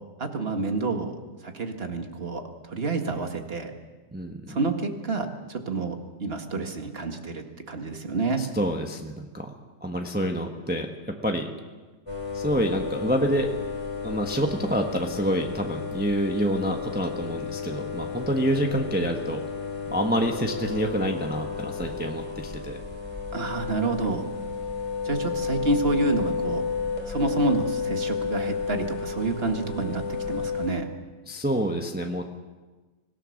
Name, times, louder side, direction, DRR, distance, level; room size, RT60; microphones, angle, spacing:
voice 1, 0.2-1.2 1.4-3.7 4.5-8.4 23.3-24.3 25.0-26.6 27.1-30.9, right 3 dB, 35° right, 5 dB, 1.9 m, -28 dB
voice 2, 4.1-4.6 8.4-9.5 9.8-10.9 11.2-11.5 12.3-13.5 14.0-19.4 19.9-22.8 31.3-32.2, right 1 dB, 5° right, 2 dB, 1.1 m, -27 dB
sound 1, 12.1-30.7, left 5 dB, 15° left, 3.6 m, -32 dB
25.0 x 17.0 x 6.5 m, 1.3 s
omnidirectional pair, 1.9 m